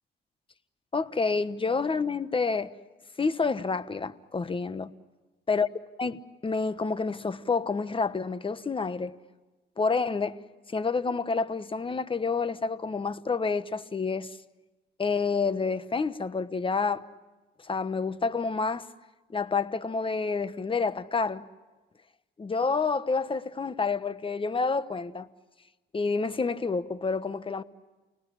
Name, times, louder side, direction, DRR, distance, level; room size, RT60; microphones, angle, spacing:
voice 1, 0.9-2.7 3.2-4.9 5.5-5.7 6.0-9.1 9.8-10.4 10.7-14.4 15.0-17.0 17.6-18.9 19.3-21.4 22.4-25.3 25.9-27.6, left 4 dB, 25° left, 1.1 m, -28 dB
29.5 x 19.0 x 10.0 m
cardioid pair, 90°, 20 cm